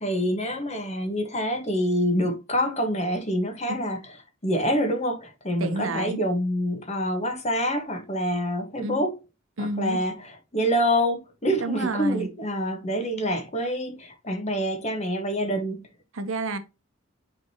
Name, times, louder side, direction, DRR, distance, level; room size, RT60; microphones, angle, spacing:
voice 1, 0.0-4.0 4.4-9.1 9.6-15.8, equal, 30° left, 1.5 m, -26 dB
voice 2, 5.6-6.2 8.8-9.0 9.6-10.0 11.6-12.3 16.1-16.6, right 2 dB, 70° right, 1.0 m, -30 dB
9.4 x 3.9 x 2.9 m
head